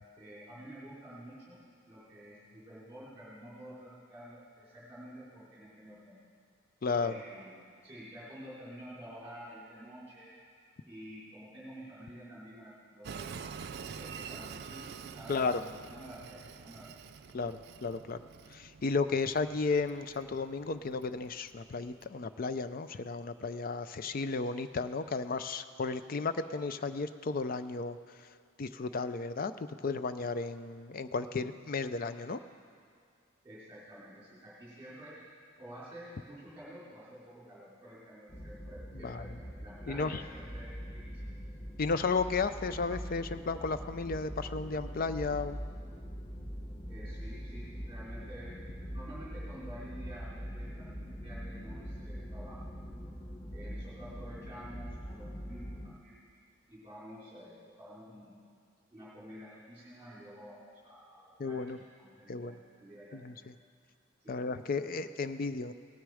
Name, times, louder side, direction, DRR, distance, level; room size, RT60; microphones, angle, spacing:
voice 1, 0.2-1.6 1.8-6.2 7.0-10.3 10.9-13.3 13.9-16.9 33.4-35.2 35.6-41.4 46.9-48.6 48.9-52.7 53.5-56.2 56.7-58.4 58.9-63.2 64.2-64.4, equal, 15° right, -10 dB, 3.7 m, -50 dB
voice 2, 6.8-7.1 15.3-15.6 17.3-18.2 18.5-28.0 28.6-32.4 39.0-39.2 39.9-40.2 41.8-45.6 61.4-61.8 62.3-62.5 63.1-63.3 64.3-65.7, left 4 dB, 50° left, 12 dB, 0.5 m, -33 dB
Train, 13.0-22.1, right 6 dB, 55° right, 0.4 m, -47 dB
sound 1, 38.3-55.9, equal, 15° left, 0.7 m, -43 dB
17.5 x 9.4 x 4.9 m, 2.3 s
head